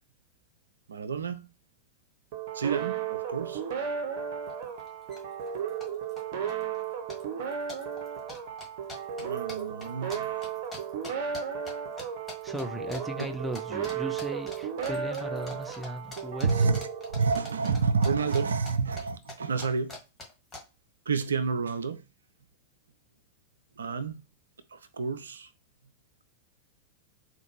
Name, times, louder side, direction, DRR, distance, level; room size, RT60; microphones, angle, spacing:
voice 1, 0.9-1.5 2.5-3.6 9.2-10.3 13.2-13.3 16.4-19.9 21.1-22.0 23.8-24.2 24.7-25.5, right 5 dB, 70° right, 0.3 m, -29 dB
sound 1, 2.3-17.7, right 7 dB, 45° right, 0.8 m, -35 dB
sound 2, 4.5-4.6 4.8-5.2 5.5-6.2 6.5-6.8 7.1-11.7 12.0-12.6 12.9-13.3 13.5-13.9 14.2-18.4 18.7-20.6, left 2 dB, 15° left, 1.5 m, -43 dB
voice 2, 12.4-16.7, right 1 dB, 5° right, 0.6 m, -37 dB
3.9 x 2.5 x 2.9 m
figure-of-eight pair, 90°, 0 cm